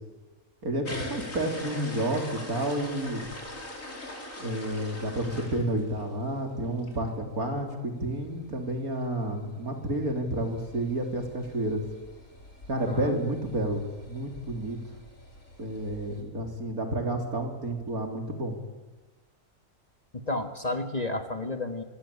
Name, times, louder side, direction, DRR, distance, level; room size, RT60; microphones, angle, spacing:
voice 1, 0.6-3.3 4.4-11.9 12.7-14.8 15.6-18.6, right 1 dB, 75° right, 4 dB, 4.2 m, -30 dB
sound 1, 0.8-6.3 6.7-7.0 7.3-7.4 7.6-7.7 7.9-16.2, left 1 dB, 60° left, 5.0 m, -43 dB
voice 2, 12.9-13.2 20.1-21.8, left 2 dB, 25° left, 7 dB, 1.8 m, -31 dB
26.5 x 25.0 x 8.7 m, 1.2 s
omnidirectional pair, 1.6 m